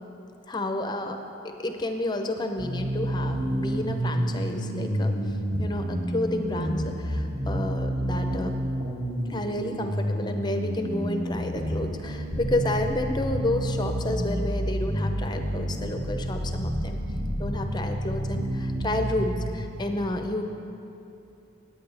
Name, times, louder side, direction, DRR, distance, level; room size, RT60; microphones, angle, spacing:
voice 1, 0.5-5.2 5.6-8.6 9.3-17.0 17.4-20.5, left 1 dB, 20° left, 5 dB, 0.6 m, -30 dB
sound 1, 2.6-19.5, equal, 55° right, 1.9 m, -29 dB
17.5 x 8.7 x 3.3 m, 2.8 s
head